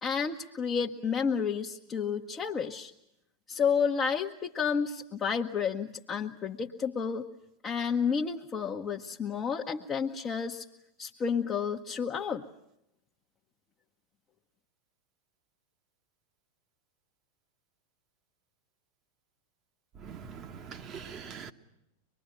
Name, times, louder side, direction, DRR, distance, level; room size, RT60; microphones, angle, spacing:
voice 1, 0.0-2.9 3.5-7.3 7.6-10.6 11.0-12.5, left 6 dB, 25° left, 1.1 m, -31 dB
voice 2, 20.0-21.5, right 6 dB, 30° right, 1.4 m, -43 dB
24.5 x 21.5 x 9.0 m
figure-of-eight pair, 90°, 0 cm